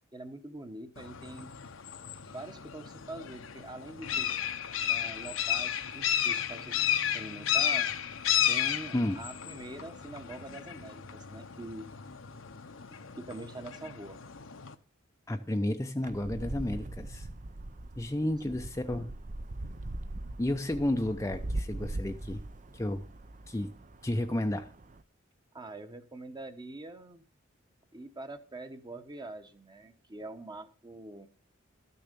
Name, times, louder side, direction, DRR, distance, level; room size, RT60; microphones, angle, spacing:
voice 1, 0.1-1.5 2.2-4.3 4.9-6.8 7.1-7.9 8.5-11.9 13.1-14.2 18.2-18.6 25.5-27.2 27.9-31.3, right 2 dB, 20° right, 1.1 m, -44 dB
sound 1, 1.0-14.7, left 9 dB, 70° left, 0.9 m, -33 dB
voice 2, 15.3-17.3 18.0-19.1 20.4-22.4 22.7-23.0 23.5-23.7 24.0-24.7, left 1 dB, 15° left, 0.6 m, -31 dB
sound 2, 16.0-25.0, right 2 dB, 40° right, 0.6 m, -40 dB
13.0 x 6.8 x 6.8 m
head